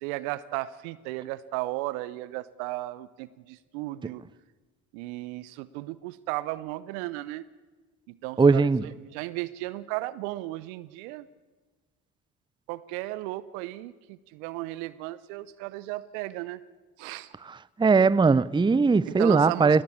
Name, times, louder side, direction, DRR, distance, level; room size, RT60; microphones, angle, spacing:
voice 1, 0.0-4.2 4.9-7.4 8.1-11.3 12.7-16.6 17.0-17.3 19.1-19.8, right 18 dB, 75° right, 0.7 m, -35 dB
voice 2, 8.4-8.8 17.5-19.8, right 4 dB, 10° right, 0.6 m, -20 dB
21.0 x 19.0 x 8.6 m
hypercardioid pair, 50°, 42 cm